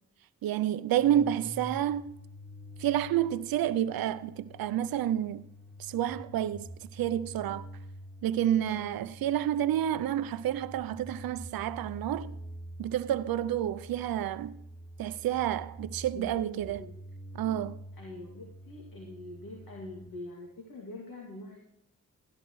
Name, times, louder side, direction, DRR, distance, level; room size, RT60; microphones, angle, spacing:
voice 1, 0.4-2.1 2.8-5.5 5.8-7.6 8.2-12.3 12.8-14.6 15.0-16.8 17.3-17.8, right 11 dB, 90° right, 0.5 m, -29 dB
sound 1, 0.9-20.1, right 1 dB, 5° left, 2.1 m, -47 dB
voice 2, 8.7-9.0 16.1-16.9 17.9-21.6, left 1 dB, 75° left, 2.3 m, -44 dB
16.5 x 11.0 x 3.1 m
cardioid pair, 50°, 34 cm